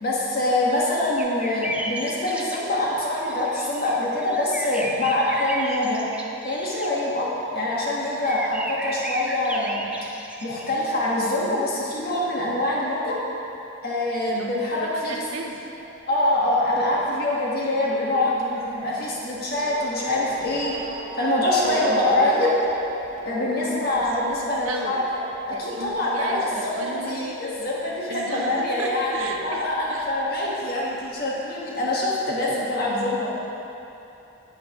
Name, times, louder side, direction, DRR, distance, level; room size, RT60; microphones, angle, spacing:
voice 1, 0.0-6.0 6.4-9.9 10.4-13.2 13.8-15.2 16.1-20.7 21.2-22.6 23.2-25.2 25.5-33.3, left 1 dB, 50° left, -5 dB, 1.5 m, -24 dB
sound 1, 1.2-2.9 3.1-6.9 7.7-10.8 11.9-12.0, right 1 dB, 5° right, 0.3 m, -34 dB
voice 2, 14.3-15.7 24.0-25.1 25.5-27.4 28.1-30.1, right 3 dB, 90° right, 3 dB, 0.7 m, -35 dB
Motor vehicle (road) / Siren, 15.8-28.8 29.0-30.2 30.9-31.0 31.2-31.3, right 1 dB, 35° right, 0.9 m, -36 dB
8.6 x 8.2 x 3.0 m, 2.9 s
head